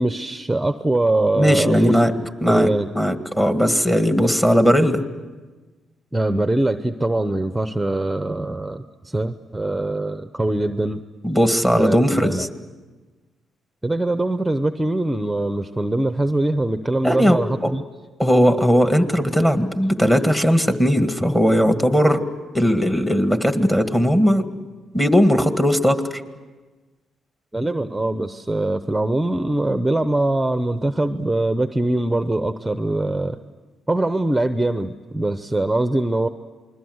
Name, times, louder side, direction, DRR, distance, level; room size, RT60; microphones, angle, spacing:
voice 1, 0.0-2.9 6.1-11.0 11.7-12.5 13.8-17.8 27.5-33.4 33.9-36.3, right 2 dB, 10° right, 9 dB, 0.9 m, -22 dB
voice 2, 1.3-2.2 2.4-2.7 2.9-5.0 11.2-12.5 17.0-17.7 18.2-22.2 22.5-24.4 24.9-26.0, equal, 10° left, 7 dB, 1.9 m, -18 dB
28.0 x 21.5 x 8.0 m, 1.3 s
cardioid pair, 90°, 0 cm